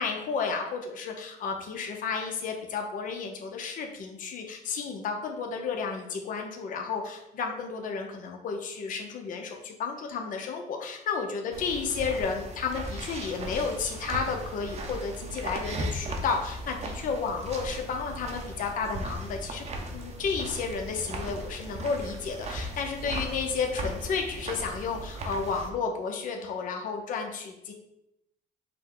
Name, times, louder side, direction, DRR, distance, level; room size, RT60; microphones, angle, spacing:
voice 1, 0.0-27.7, left 5 dB, 50° left, 2 dB, 0.7 m, -32 dB
sound 1, 11.5-25.7, right 1 dB, 40° right, 0.7 m, -37 dB
5.7 x 2.1 x 3.7 m, 0.83 s
cardioid pair, 110°, 17 cm